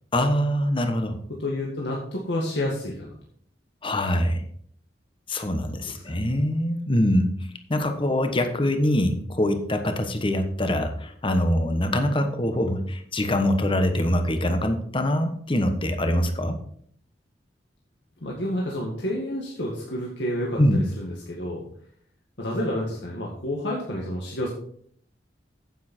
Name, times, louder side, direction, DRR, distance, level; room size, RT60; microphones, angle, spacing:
voice 1, 0.1-1.2 3.8-4.4 5.3-7.3 7.7-16.6 20.6-20.8, left 1 dB, 30° left, 7 dB, 1.2 m, -24 dB
voice 2, 1.3-3.2 5.8-6.2 18.2-21.7 22.4-24.5, left 1 dB, 75° left, -3 dB, 2.0 m, -30 dB
9.4 x 8.8 x 4.4 m, 0.62 s
head